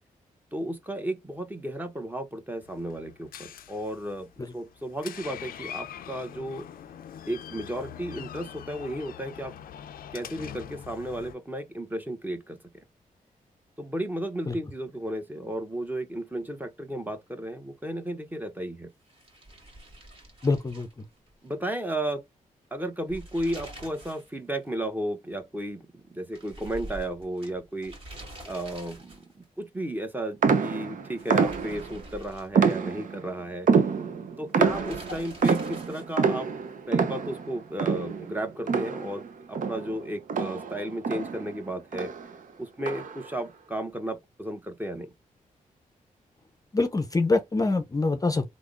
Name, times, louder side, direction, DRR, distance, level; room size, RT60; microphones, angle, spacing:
voice 1, 0.5-6.7 7.3-9.6 10.1-12.8 13.8-18.9 21.4-22.2 22.7-27.9 28.5-33.7 34.4-36.5 36.9-42.1 42.6-45.1, right 1 dB, 10° right, 0.8 m, -34 dB
Door, 2.6-11.3, left 9 dB, 85° left, 0.5 m, -43 dB
sound 1, 19.1-21.5 21.8-21.9 22.9-24.3 24.6-24.7 26.3-29.4 31.0-33.0 34.6-36.3, right 1 dB, 40° right, 2.0 m, -45 dB
voice 2, 20.4-21.0 46.7-48.5, left 3 dB, 25° left, 0.6 m, -25 dB
sound 2, 30.4-32.0 32.5-33.3 33.7-39.3 39.5-41.6 41.9-42.3 42.8-43.3, right 5 dB, 65° right, 0.7 m, -26 dB
3.4 x 2.0 x 3.6 m
cardioid pair, 65°, 15 cm